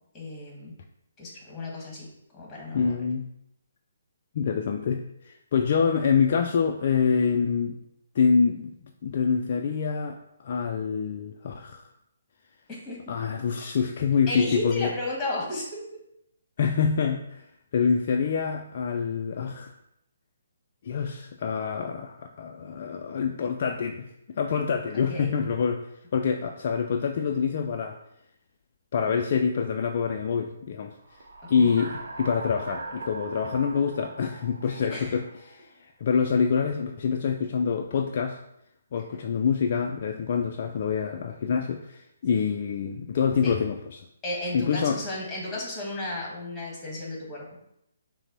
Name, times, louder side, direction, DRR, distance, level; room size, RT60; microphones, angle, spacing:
voice 1, 0.1-0.7 1.2-2.1 2.3-2.9 12.7-13.0 14.3-15.9 25.1-25.3 31.5-31.8 34.8-35.1 43.4-43.5 44.2-47.5, left 1 dB, 15° left, -3 dB, 1.6 m, -34 dB
voice 2, 2.7-3.3 4.3-7.8 8.2-8.7 9.0-11.8 13.1-14.9 16.6-17.5 17.7-19.7 20.8-24.1 24.4-25.8 26.1-28.0 28.9-30.9 31.5-38.4 38.9-44.0 44.5-45.0, left 6 dB, 45° left, 3 dB, 0.3 m, -26 dB
sound 1, 31.0-35.7, right 2 dB, 60° right, 0.8 m, -40 dB
5.8 x 2.1 x 4.2 m, 0.80 s
figure-of-eight pair, 135°, 0 cm